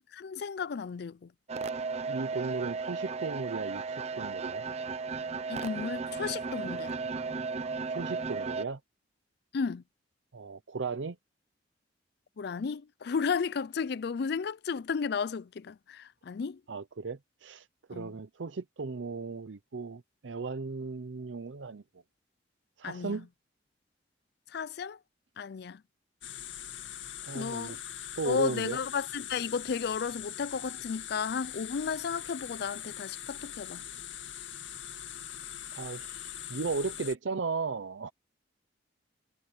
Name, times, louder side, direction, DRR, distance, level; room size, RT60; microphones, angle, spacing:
voice 1, 0.1-1.3 5.5-7.0 9.5-9.8 12.4-16.6 17.9-18.1 22.8-23.2 24.5-25.0 25.4-25.8 27.3-27.8 28.3-33.8, left 5 dB, 60° left, 0.4 m, -33 dB
sound 1, 1.5-8.6, right 4 dB, 35° right, 0.7 m, -35 dB
voice 2, 2.1-4.6 7.9-8.8 10.3-11.2 16.7-21.8 22.8-23.3 27.2-27.8 28.2-28.8 35.7-38.1, right 4 dB, 80° right, 0.6 m, -36 dB
sound 2, 26.2-37.1, left 11 dB, 80° left, 2.2 m, -42 dB
head